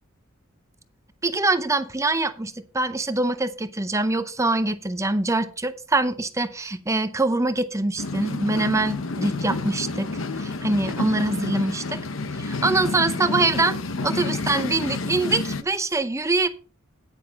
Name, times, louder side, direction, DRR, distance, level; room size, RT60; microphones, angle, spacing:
voice 1, 1.2-10.1 10.4-12.0 12.4-13.8 14.0-16.5, right 2 dB, 15° right, 0.7 m, -24 dB
sound 1, 8.0-15.6, left 3 dB, 70° left, 0.9 m, -29 dB
9.6 x 8.9 x 4.0 m
head